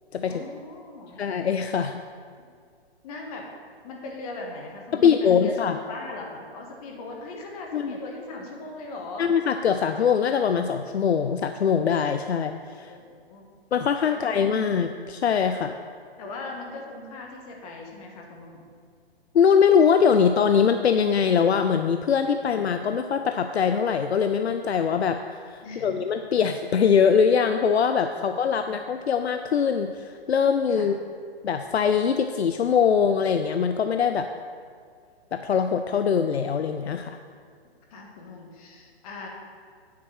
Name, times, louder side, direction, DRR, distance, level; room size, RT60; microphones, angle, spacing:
voice 1, 0.2-1.2 3.0-3.5 3.8-9.3 12.9-13.5 14.0-14.7 15.6-15.8 16.2-18.6 25.6-26.0 28.1-28.3 30.7-30.9 37.9-39.3, left 2 dB, 35° left, 0 dB, 1.6 m, -40 dB
voice 2, 1.2-2.0 4.9-5.8 7.7-7.9 9.2-12.9 13.7-15.7 19.3-25.2 25.5-30.9 31.4-34.3 35.3-37.2, left 7 dB, 90° left, 7 dB, 0.5 m, -22 dB
9.4 x 4.3 x 6.4 m, 2.1 s
hypercardioid pair, 140°, 32 cm